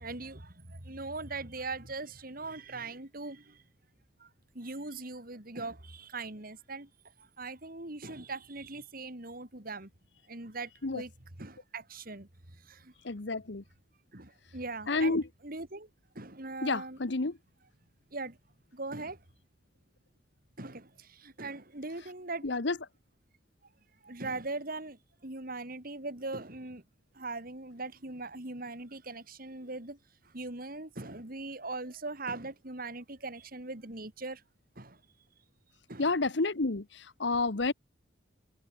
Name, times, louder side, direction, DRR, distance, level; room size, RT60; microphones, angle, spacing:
voice 1, 0.0-3.6 4.2-4.3 4.5-6.9 7.2-9.9 10.3-11.1 11.4-12.3 12.6-12.9 14.1-15.9 16.1-17.0 18.1-18.4 18.7-19.2 20.6-22.5 24.0-26.8 27.1-30.0 30.2-34.4 34.8-35.0 35.9-36.1, right 3 dB, 50° right, 3.0 m, -40 dB
voice 2, 13.0-13.6 14.9-15.2 16.6-17.3 22.4-22.7 36.0-36.8 37.2-37.7, left 3 dB, 65° left, 1.1 m, -29 dB
head